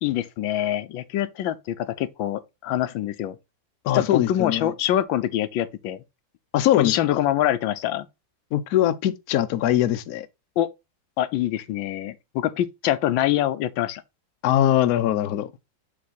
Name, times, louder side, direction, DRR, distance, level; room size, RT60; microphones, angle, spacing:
voice 1, 0.0-3.4 3.9-6.0 6.8-8.1 10.6-10.7 11.2-14.0, left 12 dB, 85° left, 1.5 m, -25 dB
voice 2, 3.8-4.7 6.5-7.2 8.5-10.3 14.4-15.5, left 12 dB, 70° left, 0.9 m, -22 dB
7.5 x 3.2 x 4.0 m
omnidirectional pair, 2.1 m